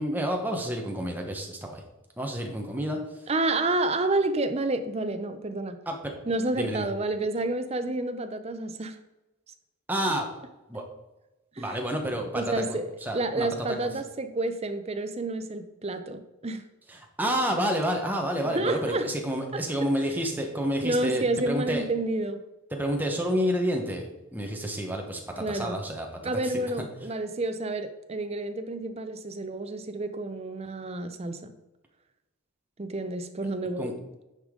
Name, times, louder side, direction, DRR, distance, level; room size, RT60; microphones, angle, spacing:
voice 1, 0.0-1.8 2.2-3.0 5.9-6.1 6.5-6.8 9.9-10.3 10.7-10.8 11.6-13.8 16.9-21.8 22.7-24.0 24.3-26.8 33.8-33.9, equal, 10° right, 2 dB, 1.0 m, -29 dB
voice 2, 3.3-5.8 6.3-9.0 11.6-11.8 12.3-16.6 18.4-19.1 19.5-19.6 20.8-22.4 25.4-25.8 26.2-31.5 32.8-33.9, right 2 dB, 30° right, 9 dB, 0.5 m, -29 dB
9.9 x 5.1 x 3.7 m, 1.0 s
head